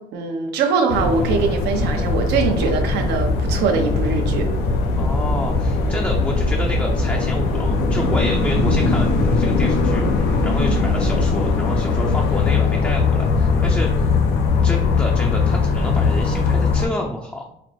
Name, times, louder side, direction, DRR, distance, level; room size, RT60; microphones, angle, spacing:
voice 1, 0.1-4.5, right 5 dB, 85° right, 4 dB, 0.8 m, -22 dB
sound 1, 0.9-16.9, left 4 dB, 90° left, 0.7 m, -20 dB
voice 2, 4.9-9.1 9.4-13.9 14.6-17.5, left 1 dB, 10° left, 0 dB, 0.5 m, -29 dB
4.2 x 2.0 x 4.5 m, 0.76 s
cardioid pair, 110°, 17 cm